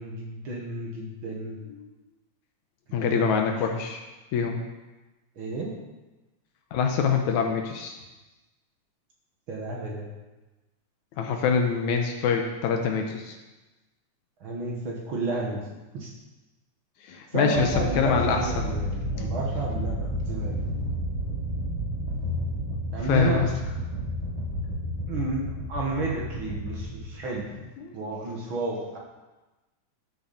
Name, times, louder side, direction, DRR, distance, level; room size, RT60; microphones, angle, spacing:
voice 1, 0.0-1.6 3.0-3.4 5.4-5.7 9.5-10.1 14.4-15.6 15.9-16.1 17.3-20.7 22.9-23.4 25.1-25.4 25.7-27.5 27.9-29.0, right 2 dB, 50° right, -2 dB, 2.0 m, -31 dB
voice 2, 2.9-4.0 4.3-4.6 6.7-8.0 11.2-13.4 17.0-18.7 19.2-19.3 23.1-23.5 27.8-27.9, left 6 dB, 80° left, 3 dB, 2.2 m, -25 dB
sound 1, 17.6-27.6, equal, 70° right, 3.6 m, -31 dB
13.5 x 6.9 x 4.2 m, 1.1 s
omnidirectional pair, 3.4 m